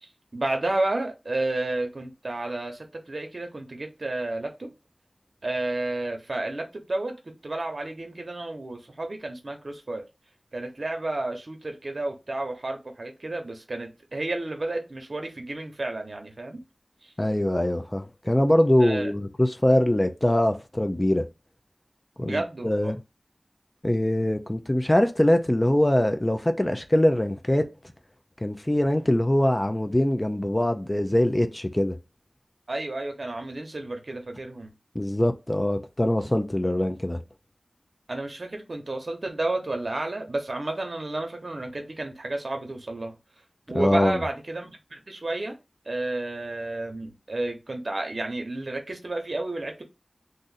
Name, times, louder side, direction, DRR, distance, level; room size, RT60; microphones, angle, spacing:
voice 1, 0.0-4.7 5.4-10.1 10.5-16.6 17.0-17.1 18.8-19.1 22.2-22.9 32.7-34.7 38.1-43.1 43.7-45.6 45.9-49.8, right 2 dB, 65° right, 0.8 m, -31 dB
voice 2, 17.2-21.3 22.2-23.0 23.8-27.7 28.4-32.0 34.9-37.2 43.7-44.2, left 1 dB, 20° left, 0.4 m, -23 dB
2.6 x 2.5 x 4.0 m
wide cardioid pair, 60°, 0 cm